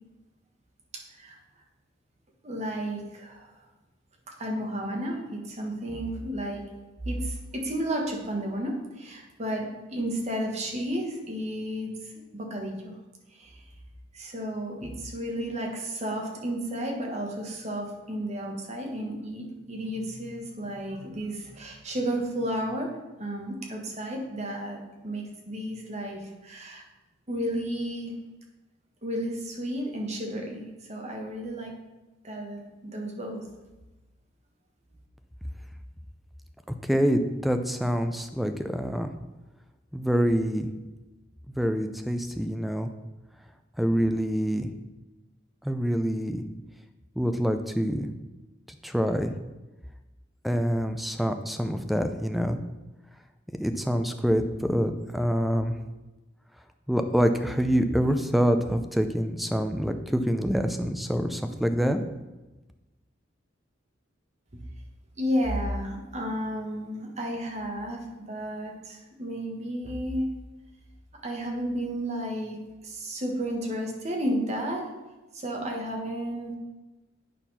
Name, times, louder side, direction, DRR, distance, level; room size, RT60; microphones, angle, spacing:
voice 1, 0.9-1.4 2.4-3.5 4.4-6.6 7.0-13.0 13.3-13.6 14.1-22.9 23.2-26.8 27.3-28.1 29.0-31.7 32.2-33.4 64.5-64.6 65.2-70.3 71.2-74.8 75.3-76.5, equal, 35° right, 0 dB, 1.5 m, -32 dB
voice 2, 36.8-39.1 39.9-40.7 41.5-42.9 43.8-44.7 45.6-46.4 47.2-48.1 48.8-49.3 50.4-52.6 53.6-55.7 56.9-62.0, equal, ahead, 7 dB, 0.5 m, -26 dB
9.1 x 4.4 x 5.6 m, 1.1 s
head